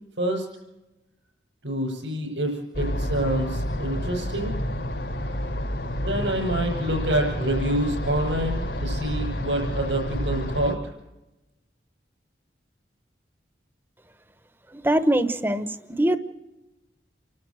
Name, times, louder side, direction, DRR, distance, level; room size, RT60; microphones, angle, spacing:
voice 1, 1.6-4.6 6.0-10.8, right 1 dB, 85° right, -4 dB, 6.9 m, -27 dB
sound 1, 2.7-10.7, equal, 75° left, 3.5 m, -29 dB
voice 2, 14.7-16.2, right 1 dB, 10° right, 10 dB, 1.0 m, -23 dB
28.5 x 13.0 x 8.0 m, 1.0 s
head